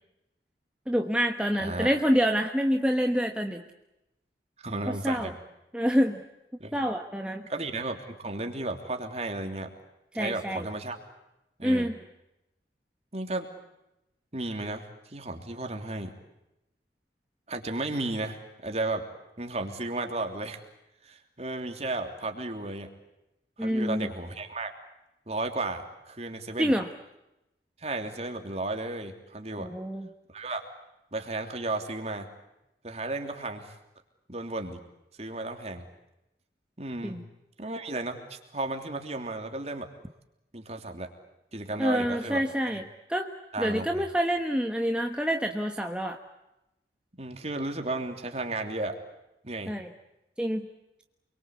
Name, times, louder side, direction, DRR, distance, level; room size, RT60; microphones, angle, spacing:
voice 1, 0.9-3.6 4.9-5.3 5.7-6.2 6.7-7.5 10.1-10.6 11.6-11.9 23.6-24.1 26.6-26.9 29.6-30.1 37.0-37.2 41.8-42.8 43.1-43.3 43.6-46.2 49.7-49.9 50.4-50.7, equal, 5° right, 4 dB, 1.2 m, -27 dB
voice 2, 1.6-2.1 4.6-5.3 6.6-6.8 7.5-9.7 10.1-11.0 11.6-11.9 13.1-13.5 14.3-16.1 17.5-19.0 19.4-20.6 21.0-22.9 23.6-24.7 25.3-26.7 27.8-29.7 30.3-30.6 31.1-32.3 32.8-33.7 34.3-34.8 35.2-35.8 36.8-37.2 37.6-39.9 40.5-41.1 41.5-42.8 43.5-44.0 47.2-49.0 49.4-49.7, right 2 dB, 35° right, 5 dB, 3.2 m, -34 dB
28.5 x 23.0 x 8.3 m, 0.91 s
head